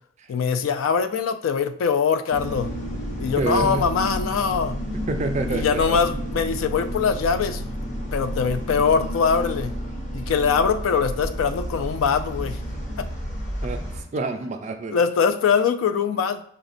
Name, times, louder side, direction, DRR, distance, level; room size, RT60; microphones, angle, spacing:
voice 1, 0.3-2.7 3.2-4.8 5.5-7.7 8.1-9.7 10.1-12.6 13.0-13.1 14.9-16.4, left 6 dB, 90° left, 0.3 m, -22 dB
sound 1, 2.3-14.0, equal, 40° left, 0.7 m, -31 dB
voice 2, 3.4-3.9 5.1-6.0 13.6-15.0, right 3 dB, 35° right, 0.3 m, -27 dB
5.6 x 2.1 x 2.5 m
head